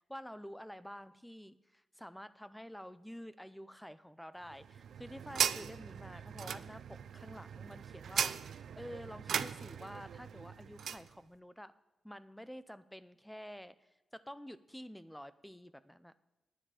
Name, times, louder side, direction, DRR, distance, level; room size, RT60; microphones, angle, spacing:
voice 1, 0.0-11.7 12.0-13.8 14.1-16.1, equal, 5° left, 14 dB, 0.4 m, -49 dB
sound 1, 4.5-11.1, right 8 dB, 70° right, 0.4 m, -38 dB
10.0 x 9.9 x 4.9 m, 1.0 s
wide cardioid pair, 130°, 0 cm